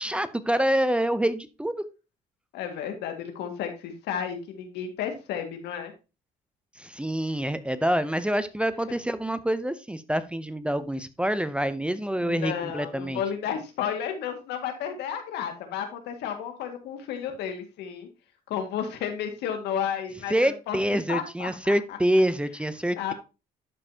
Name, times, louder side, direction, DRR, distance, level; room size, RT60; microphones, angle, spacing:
voice 1, 0.0-1.8 6.8-13.2 20.3-23.1, right 1 dB, 5° right, 13 dB, 0.6 m, -26 dB
voice 2, 2.5-5.9 12.2-18.1 18.5-20.8 21.1-22.0 23.0-23.1, left 8 dB, 85° left, 6 dB, 1.9 m, -32 dB
12.0 x 5.3 x 2.8 m, 0.29 s
cardioid pair, 110°, 17 cm